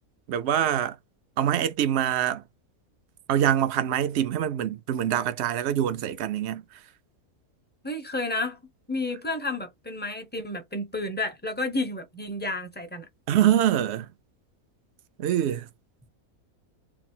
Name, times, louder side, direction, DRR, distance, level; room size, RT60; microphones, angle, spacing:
voice 1, 0.3-0.9 1.4-2.4 3.3-6.6 13.3-14.1 15.2-15.7, right 10 dB, 60° right, 0.8 m, -24 dB
voice 2, 7.8-8.6 8.9-13.0, left 2 dB, 10° left, 0.6 m, -31 dB
4.0 x 2.0 x 4.3 m
omnidirectional pair, 1.5 m